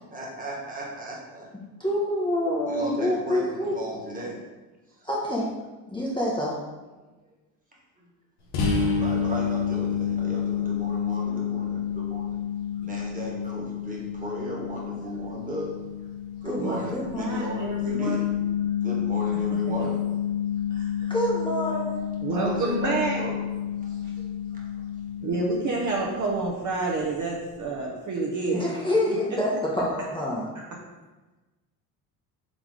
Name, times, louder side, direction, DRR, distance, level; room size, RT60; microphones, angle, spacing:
voice 1, 0.1-1.5 2.6-4.4 5.0-5.1 8.7-12.4 12.8-15.7 16.4-18.3 18.8-20.0 21.0-21.1 22.3-23.3 23.8-24.6, equal, 15° right, -3 dB, 1.4 m, -36 dB
voice 2, 1.8-3.7 5.0-5.4 5.9-6.6 16.4-17.4 21.1-22.0 28.5-29.5 29.8-30.4, left 1 dB, 10° left, -5 dB, 0.8 m, -27 dB
sound 1, 8.5-26.0, left 8 dB, 85° left, 0.9 m, -29 dB
voice 3, 17.2-18.2 20.7-21.1 22.2-23.2 24.0-24.1 25.2-28.6 29.1-29.2 30.6-30.7, right 3 dB, 40° right, -3 dB, 0.8 m, -29 dB
3.9 x 3.4 x 3.2 m, 1.2 s
supercardioid pair, 75°, 47 cm